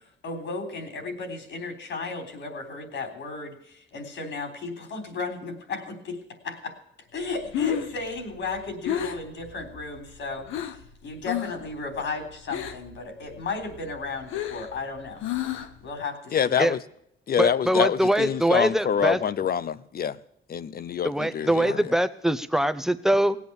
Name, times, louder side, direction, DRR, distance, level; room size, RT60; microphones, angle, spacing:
voice 1, 0.0-6.8 7.1-15.2 15.8-16.5 21.4-21.8, left 3 dB, 70° left, 6 dB, 3.6 m, -35 dB
Breathing, 7.3-10.9 11.2-11.7 11.9-13.0 13.3-15.9, left 11 dB, 85° left, 1.2 m, -31 dB
voice 2, 16.3-16.8 17.3-20.2 20.5-21.9, left 8 dB, 50° left, 16 dB, 0.8 m, -26 dB
voice 3, 17.4-19.2 21.0-23.4, right 1 dB, ahead, 11 dB, 0.9 m, -23 dB
18.0 x 8.5 x 7.1 m, 0.75 s
cardioid pair, 90°, 20 cm